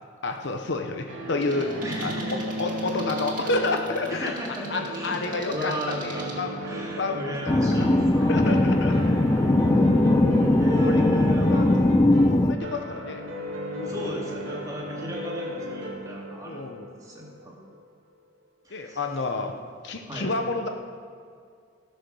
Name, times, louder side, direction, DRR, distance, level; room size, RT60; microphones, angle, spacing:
voice 1, 0.2-1.7 2.0-4.3 4.7-7.2 7.8-7.9 8.3-9.0 10.8-11.0 11.5-11.6 12.3-13.2 13.7-14.0 16.5-17.0 18.7-19.5 19.8-20.7, left 3 dB, 60° left, 5 dB, 0.9 m, -29 dB
sound 1, 1.1-17.8, equal, 80° right, 2.1 m, -35 dB
sound 2, 1.4-6.4, right 3 dB, 45° right, 2.2 m, -43 dB
voice 2, 1.8-2.4 4.1-5.2 5.5-6.3 6.6-8.4 10.6-11.5 13.8-16.6 17.0-17.5 18.6-19.0 20.1-20.3, right 1 dB, 20° right, -3 dB, 2.3 m, -34 dB
sound 3, 7.5-12.5, left 1 dB, 20° left, 0.4 m, -20 dB
17.0 x 6.7 x 6.3 m, 2.2 s
head